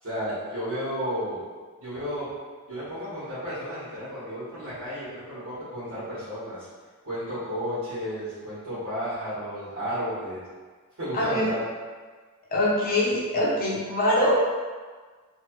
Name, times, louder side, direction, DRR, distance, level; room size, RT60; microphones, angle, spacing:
voice 1, 0.0-1.4 1.8-2.3 2.7-6.7 7.0-10.4 11.0-11.6, equal, 70° right, -13 dB, 1.4 m, -32 dB
voice 2, 11.1-11.5 12.5-14.4, left 1 dB, 40° left, -5 dB, 0.7 m, -23 dB
3.1 x 2.2 x 3.0 m, 1.5 s
head